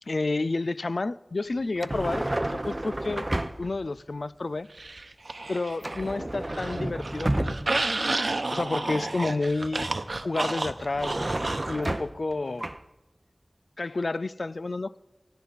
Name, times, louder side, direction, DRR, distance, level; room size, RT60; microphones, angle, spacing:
voice 1, 0.1-3.3 3.6-4.7 5.5-7.8 8.5-9.9 10.2-11.2 11.7-12.6 13.8-15.0, left 3 dB, 70° left, 0.4 m, -30 dB
sound 1, 1.8-3.8 5.8-7.9 10.8-12.3 12.6-12.8, right 1 dB, 30° right, 0.7 m, -31 dB
sound 2, 4.8-6.1 6.4-11.8, right 2 dB, 65° right, 0.9 m, -31 dB
20.0 x 14.5 x 4.1 m
wide cardioid pair, 55°, 0 cm